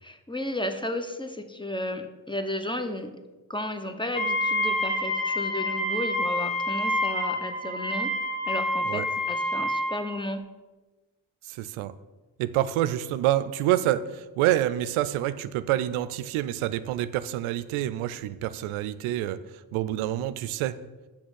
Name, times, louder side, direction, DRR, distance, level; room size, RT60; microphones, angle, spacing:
voice 1, 0.0-3.1 3.5-8.1 8.5-10.4, left 1 dB, 10° left, 8 dB, 0.9 m, -33 dB
Wind instrument woodwind instrument, 4.1-10.1, left 1 dB, 65° left, 2.8 m, -28 dB
voice 2, 11.5-11.9 12.4-19.4 19.7-20.7, right 13 dB, 80° right, 14 dB, 0.5 m, -27 dB
6.2 x 5.9 x 6.3 m, 1.2 s
supercardioid pair, 50°, 49 cm